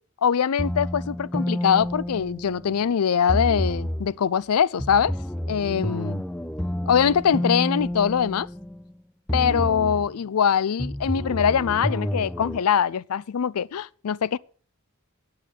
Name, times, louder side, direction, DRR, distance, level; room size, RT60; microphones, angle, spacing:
voice 1, 0.2-5.1 5.5-6.2 6.9-8.5 9.3-14.4, left 7 dB, 80° left, 0.4 m, -23 dB
sound 1, 0.6-2.8 3.3-4.1 4.8-8.9 9.3-10.1 10.8-12.6, left 1 dB, 5° left, 0.4 m, -29 dB
8.8 x 8.3 x 7.5 m
head